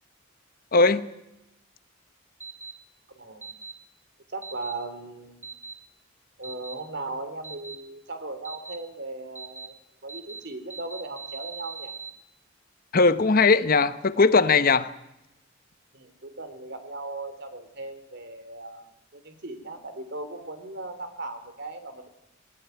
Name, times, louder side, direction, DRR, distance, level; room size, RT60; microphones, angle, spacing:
voice 1, 0.7-1.1 12.9-14.9, left 4 dB, 45° left, 13 dB, 1.0 m, -19 dB
sound 1, 2.4-2.7 3.4-3.7 4.4-4.7 5.4-5.7 6.4-6.7 7.4-7.8 8.4-8.8 9.4-9.7 10.1-10.4 10.7-12.1, right 5 dB, 10° right, 2.2 m, -40 dB
voice 2, 3.1-3.5 4.3-5.5 6.4-9.7 10.0-11.9 15.9-18.9 19.1-22.1, right 2 dB, 60° right, 8 dB, 3.4 m, -38 dB
19.5 x 19.5 x 9.3 m, 0.90 s
head